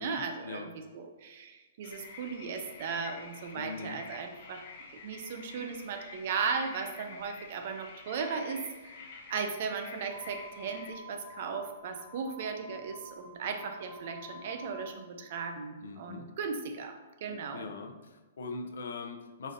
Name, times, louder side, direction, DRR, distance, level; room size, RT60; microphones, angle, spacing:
voice 1, 0.0-4.6 5.0-17.7, right 5 dB, 40° right, 6 dB, 0.4 m, -37 dB
sound 1, 1.8-10.9, left 4 dB, 40° left, 0.8 m, -49 dB
voice 2, 3.6-4.0 15.8-16.3 17.5-19.5, left 4 dB, 75° left, 5 dB, 0.5 m, -41 dB
sound 2, 10.0-15.0, left 1 dB, 5° left, 0.8 m, -50 dB
5.0 x 2.6 x 3.9 m, 1.2 s
hypercardioid pair, 175°, 0 cm